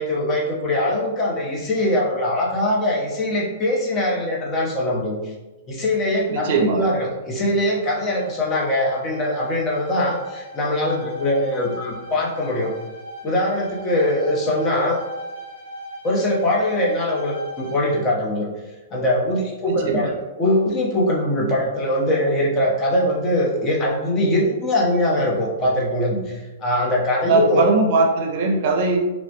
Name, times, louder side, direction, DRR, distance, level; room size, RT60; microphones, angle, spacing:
voice 1, 0.0-5.3 5.7-12.7 13.2-15.0 16.0-18.5 18.9-20.1 20.4-27.7, left 1 dB, 30° left, -2 dB, 0.7 m, -22 dB
voice 2, 6.3-6.9 19.7-20.1 27.3-29.0, right 3 dB, 55° right, 2 dB, 0.5 m, -20 dB
Bowed string instrument, 7.7-18.1, equal, 80° left, 1.0 m, -38 dB
3.0 x 2.1 x 2.8 m, 1.1 s
hypercardioid pair, 120°, 0 cm